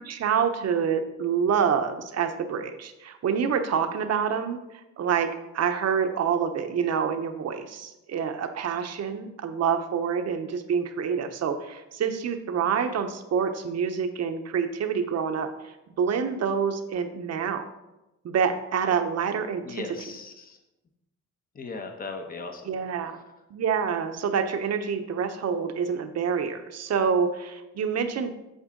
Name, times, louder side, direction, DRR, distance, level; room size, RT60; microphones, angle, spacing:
voice 1, 0.0-4.6 5.0-15.5 16.0-17.7 18.2-19.8 22.6-23.2 23.5-28.3, right 7 dB, 55° right, 7 dB, 0.9 m, -27 dB
voice 2, 19.6-20.6 21.5-22.8, left 3 dB, 30° left, 4 dB, 1.0 m, -37 dB
8.0 x 7.2 x 3.8 m, 0.98 s
cardioid pair, 90°, 30 cm